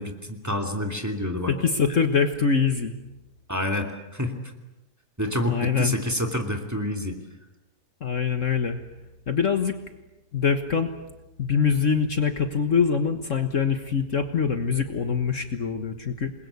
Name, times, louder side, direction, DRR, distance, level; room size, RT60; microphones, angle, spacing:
voice 1, 0.0-1.5 3.5-4.4 5.2-7.2, left 1 dB, 10° right, 3 dB, 2.7 m, -28 dB
voice 2, 1.5-2.9 5.5-5.9 8.0-8.8 9.3-9.8 10.3-10.9 11.4-16.3, left 6 dB, 50° left, 7 dB, 1.7 m, -24 dB
28.0 x 22.0 x 8.3 m, 0.98 s
omnidirectional pair, 1.8 m